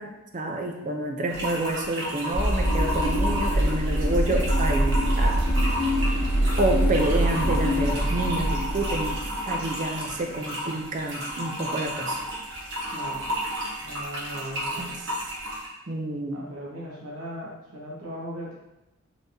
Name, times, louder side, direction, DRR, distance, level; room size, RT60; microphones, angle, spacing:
voice 1, 0.0-5.4 6.6-9.2 9.5-12.2 14.8-14.9 15.9-16.4, right 2 dB, 35° right, 2 dB, 0.4 m, -28 dB
sound 1, 1.3-15.7, equal, 55° right, 0.9 m, -33 dB
sound 2, 2.3-9.7, equal, 80° left, 1.3 m, -24 dB
voice 2, 12.9-13.3 13.8-15.0 16.3-18.5, equal, 80° right, -5 dB, 1.0 m, -38 dB
4.2 x 3.2 x 2.6 m, 0.93 s
head